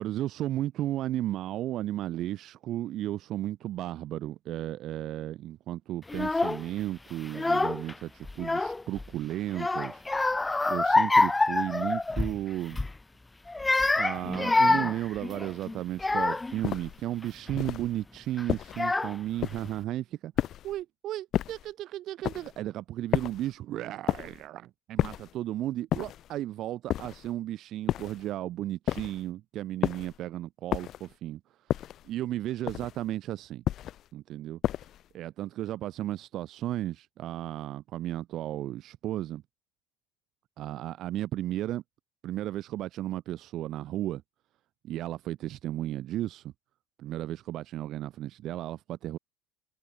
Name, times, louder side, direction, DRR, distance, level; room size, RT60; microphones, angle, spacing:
voice 1, 0.0-10.0 10.7-12.8 14.0-20.3 20.6-31.4 32.0-33.6 34.1-34.6 35.1-39.4 40.6-41.8 42.2-44.2 44.8-46.5 47.0-49.2, right 13 dB, 55° right, 6.6 m, -34 dB
Child speech kid speaking / Crying sobbing, 6.1-6.6 7.3-7.9 8.2-9.1 9.5-12.4 12.7-13.0 13.5-16.6 17.2-17.6 18.4-18.5 18.7-19.4, left 2 dB, 15° left, 0.9 m, -26 dB
sound 1, 16.6-17.0 17.6-17.9 18.5-18.9 19.4-19.8 20.4-20.8 21.3-21.7 22.2-22.6 23.1-23.5 24.1-24.4 25.0-25.4 25.9-26.3 26.9-27.3 27.9-28.3 28.9-29.3 29.8-30.2 30.7-31.1 31.7-32.1 32.7-33.1 33.6-34.1 34.6-35.1, left 12 dB, 50° left, 4.3 m, -31 dB
supercardioid pair, 90°, 0 cm